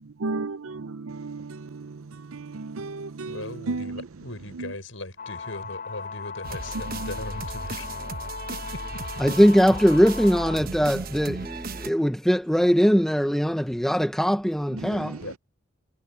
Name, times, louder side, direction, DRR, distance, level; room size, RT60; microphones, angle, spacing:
voice 1, 0.2-4.0 4.6-4.7 6.9-7.1 10.9-11.8 14.7-15.2, right 3 dB, 80° right, 0.6 m, -34 dB
voice 2, 3.3-8.0 8.5-8.6 14.9-15.4, left 2 dB, 70° left, 6.3 m, -38 dB
sound 1, 5.2-10.6, left 5 dB, 40° left, 6.5 m, -37 dB
sound 2, 6.4-11.9, right 3 dB, 45° right, 1.1 m, -36 dB
voice 3, 9.2-15.1, equal, ahead, 0.9 m, -21 dB
head